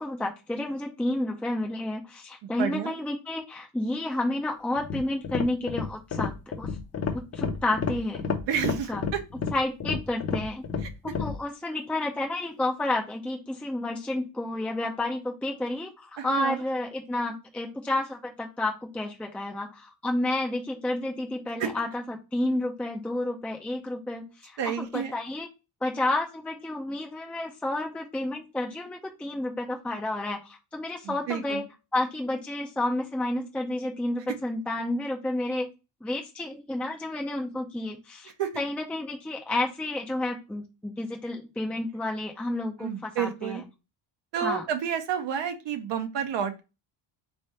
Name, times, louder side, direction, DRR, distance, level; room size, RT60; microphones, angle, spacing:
voice 1, 0.0-6.7 7.1-8.3 8.7-9.0 9.5-10.7 11.0-25.5 25.8-31.6 31.9-35.7 36.0-43.6 44.4-44.6, left 1 dB, 5° left, 2 dB, 0.5 m, -30 dB
voice 2, 2.4-2.9 8.3-9.2 10.8-10.9 16.2-16.6 21.6-21.7 24.6-25.2 31.0-31.6 38.4-38.6 42.8-43.6 44.3-46.6, right 8 dB, 70° right, 7 dB, 0.9 m, -30 dB
sound 1, 4.8-11.4, left 5 dB, 35° left, 0.7 m, -31 dB
3.6 x 3.4 x 4.2 m, 0.28 s
cardioid pair, 140°, 44 cm